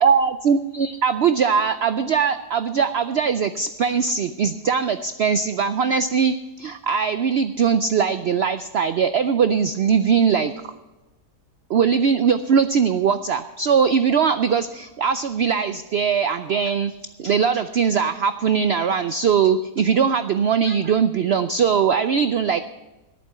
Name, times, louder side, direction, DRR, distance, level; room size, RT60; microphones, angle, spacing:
voice 1, 0.0-10.5 11.7-16.9 17.2-22.6, right 6 dB, 80° right, 11 dB, 0.5 m, -20 dB
14.0 x 11.0 x 5.6 m, 1.1 s
omnidirectional pair, 1.7 m